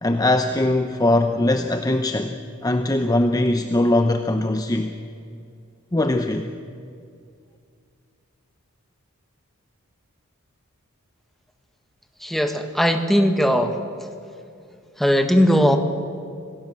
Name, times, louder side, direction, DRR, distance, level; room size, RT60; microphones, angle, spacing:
voice 1, 0.0-2.3 2.6-4.9 5.9-6.5, left 1 dB, 15° left, 6 dB, 0.8 m, -21 dB
voice 2, 12.2-13.8 15.0-15.8, equal, ahead, 5 dB, 1.6 m, -18 dB
26.5 x 18.0 x 7.6 m, 2.3 s
head